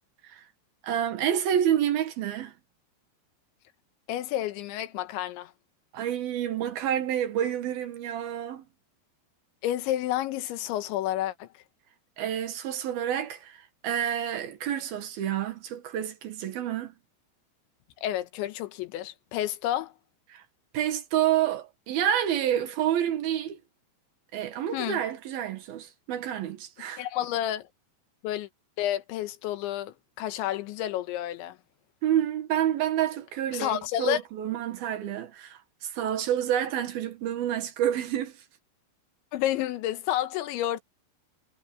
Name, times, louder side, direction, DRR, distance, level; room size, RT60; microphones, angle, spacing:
voice 1, 0.8-2.5 5.9-8.6 12.2-16.9 20.3-20.4 20.7-23.6 24.3-27.0 32.0-38.3, right 10 dB, 65° right, 3.0 m, -28 dB
voice 2, 4.1-5.5 9.6-11.5 18.0-19.9 24.7-25.0 27.0-27.7 28.2-28.5 28.8-31.6 33.5-34.2 39.3-40.8, left 13 dB, 90° left, 3.6 m, -30 dB
omnidirectional pair, 5.1 m